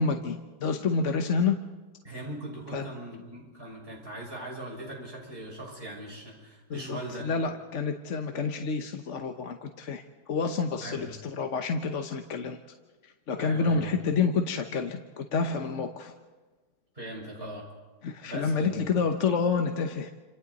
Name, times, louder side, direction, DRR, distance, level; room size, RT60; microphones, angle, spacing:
voice 1, 0.0-1.6 2.7-2.8 6.7-10.0 10.3-12.6 13.3-16.1 18.0-20.1, left 5 dB, 50° left, 5 dB, 1.2 m, -28 dB
voice 2, 2.0-7.3 10.8-11.1 13.4-14.1 16.9-17.6 18.3-18.8, right 1 dB, 35° right, -2 dB, 6.4 m, -40 dB
29.0 x 27.0 x 4.1 m, 1.3 s
omnidirectional pair, 1.8 m